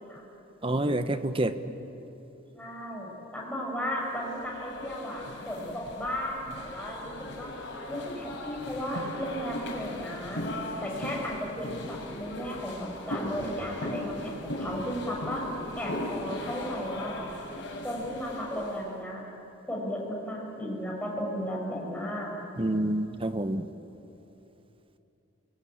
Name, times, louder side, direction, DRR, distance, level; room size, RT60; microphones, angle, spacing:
voice 1, 0.6-1.6 22.6-23.7, right 1 dB, 30° right, 10 dB, 1.0 m, -28 dB
voice 2, 2.5-7.5 7.9-10.4 10.8-15.4 15.8-17.3 17.8-19.2 19.7-22.3, equal, 5° left, -2 dB, 6.3 m, -35 dB
sound 1, 4.1-18.8, left 1 dB, 65° left, 5.3 m, -38 dB
27.5 x 22.0 x 8.9 m, 3.0 s
head